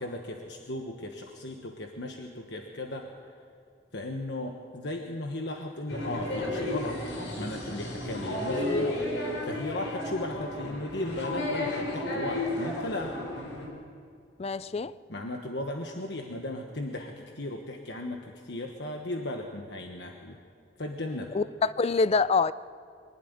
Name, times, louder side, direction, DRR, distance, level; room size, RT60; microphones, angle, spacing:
voice 1, 0.0-3.1 3.9-7.0 7.4-13.2 15.1-20.4 20.8-21.3, left 1 dB, 65° left, 3 dB, 1.4 m, -36 dB
sound 1, 5.9-13.7, left 1 dB, 80° left, 5.3 m, -33 dB
voice 2, 14.4-14.9 21.3-22.5, left 4 dB, 35° left, 16 dB, 0.4 m, -25 dB
23.5 x 12.0 x 9.5 m, 2.3 s
head